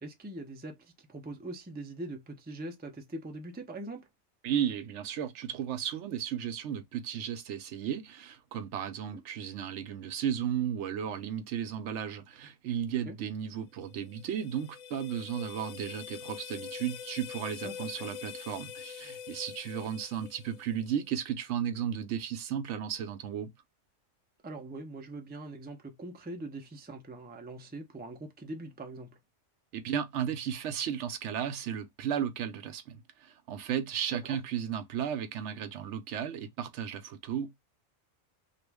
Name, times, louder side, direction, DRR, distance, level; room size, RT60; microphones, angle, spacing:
voice 1, 0.0-4.1 9.1-9.2 13.1-13.2 17.6-18.1 24.4-29.2 34.1-34.4, right 2 dB, 15° right, 0.4 m, -42 dB
voice 2, 4.4-23.5 29.7-37.6, right 9 dB, 75° right, 0.9 m, -34 dB
sound 1, 13.9-21.0, left 8 dB, 85° left, 0.9 m, -44 dB
3.0 x 2.5 x 3.4 m
omnidirectional pair, 1.3 m